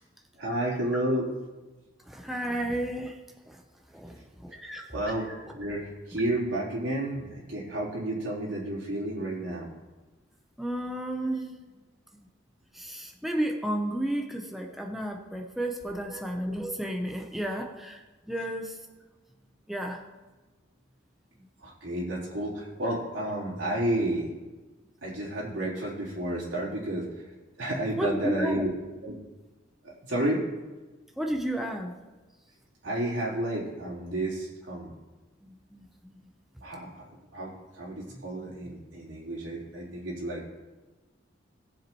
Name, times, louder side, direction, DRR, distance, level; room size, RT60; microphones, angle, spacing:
voice 1, 0.4-1.3 4.9-9.7 11.2-11.5 16.0-16.2 21.6-24.3 25.0-27.2 27.6-28.7 29.0-29.2 29.8-30.4 32.8-34.9 36.6-37.0 37.3-40.4, right 1 dB, 75° right, -6 dB, 3.8 m, -31 dB
voice 2, 2.1-3.2 3.9-4.1 4.4-4.8 10.6-11.4 12.1-12.3 12.8-18.0 18.3-18.8 19.7-20.0 28.0-28.6 31.2-31.9 35.4-36.2, right 1 dB, ahead, 1 dB, 0.8 m, -32 dB
18.0 x 7.3 x 3.1 m, 1.2 s
head